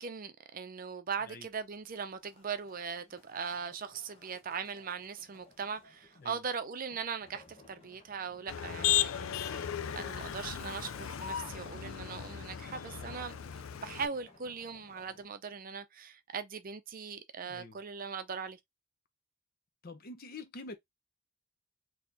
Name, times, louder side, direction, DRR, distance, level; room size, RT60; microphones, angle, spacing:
voice 1, 0.0-13.4 13.8-18.6, right 6 dB, 45° right, 0.6 m, -40 dB
sound 1, 1.1-15.3, left 2 dB, 30° left, 1.2 m, -59 dB
Motor vehicle (road), 8.5-14.1, left 10 dB, 85° left, 0.4 m, -35 dB
voice 2, 17.4-17.8 19.8-20.7, left 3 dB, 50° left, 0.8 m, -46 dB
4.1 x 2.9 x 2.7 m
head